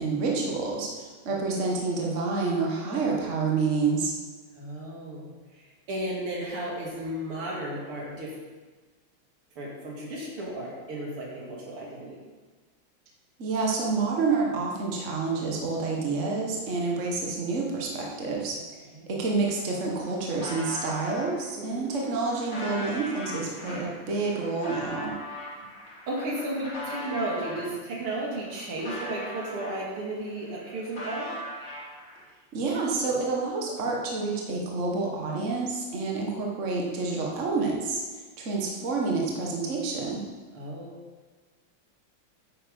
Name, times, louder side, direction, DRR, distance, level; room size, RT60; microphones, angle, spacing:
voice 1, 0.0-4.1 13.4-18.6 19.1-25.1 32.5-38.0 38.4-40.2, right 4 dB, 35° right, -2 dB, 1.7 m, -28 dB
voice 2, 4.5-8.3 9.6-12.2 18.9-19.1 21.6-21.9 25.6-25.7 26.1-31.3 40.5-41.0, right 1 dB, 85° right, -3 dB, 3.3 m, -34 dB
sound 1, 19.7-21.3 21.9-27.7 28.2-30.1 30.4-32.2, left 1 dB, 55° left, 4.8 m, -39 dB
9.4 x 8.7 x 5.4 m, 1.4 s
omnidirectional pair, 2.4 m